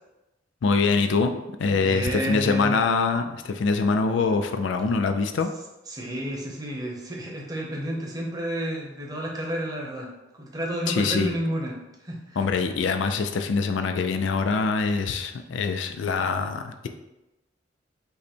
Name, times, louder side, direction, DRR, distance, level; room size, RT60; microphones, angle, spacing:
voice 1, 0.6-1.3 1.6-5.5 10.9-11.3 12.4-16.9, left 4 dB, 75° left, 7 dB, 0.4 m, -24 dB
voice 2, 1.7-2.7 5.9-12.4, right 1 dB, 20° right, -2 dB, 0.9 m, -31 dB
5.5 x 2.1 x 4.3 m, 0.96 s
head